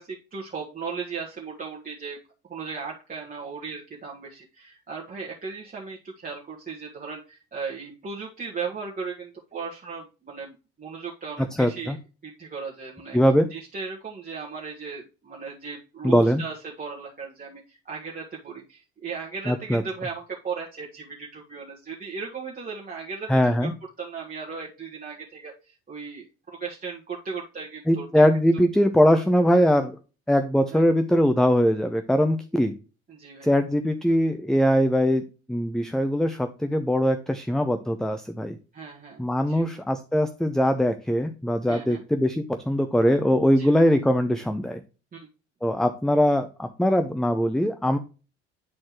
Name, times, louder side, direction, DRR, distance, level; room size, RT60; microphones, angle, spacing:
voice 1, 0.0-2.2 2.5-12.0 12.2-13.2 13.5-23.3 23.6-23.7 24.0-28.3 30.7-30.8 33.1-33.5 38.7-39.7 41.7-42.0 43.6-43.7 45.1-45.3, right 5 dB, 25° right, -3 dB, 1.6 m, -37 dB
voice 2, 11.6-12.0 13.1-13.5 16.0-16.4 19.5-19.8 23.3-23.7 27.9-30.0 30.3-32.7 33.4-38.6 39.2-44.8 45.6-48.0, equal, ahead, 8 dB, 0.6 m, -21 dB
9.7 x 4.2 x 3.0 m, 0.33 s
hypercardioid pair, 60°, 32 cm